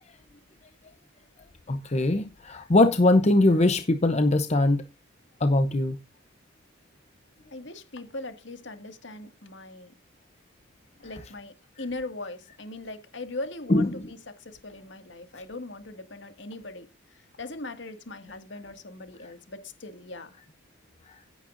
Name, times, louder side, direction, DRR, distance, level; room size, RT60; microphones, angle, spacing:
voice 1, 1.7-4.8 5.4-6.0 13.7-14.0, left 2 dB, 35° left, 0.7 m, -21 dB
voice 2, 7.5-9.9 11.0-16.9 17.1-20.4, left 2 dB, 65° left, 2.0 m, -40 dB
16.5 x 8.4 x 2.6 m
head